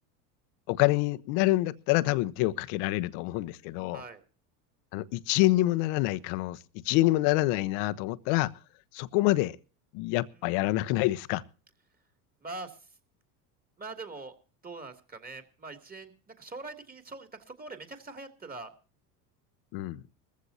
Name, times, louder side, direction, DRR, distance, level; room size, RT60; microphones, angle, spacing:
voice 1, 0.7-4.0 4.9-6.6 6.8-8.5 8.9-9.6 9.9-11.4 19.7-20.0, left 18 dB, 65° left, 1.1 m, -26 dB
voice 2, 3.9-4.2 10.3-10.5 12.4-12.8 13.8-14.3 14.6-18.7, right 3 dB, 20° right, 2.9 m, -43 dB
20.0 x 15.0 x 2.8 m
hypercardioid pair, 90°, 46 cm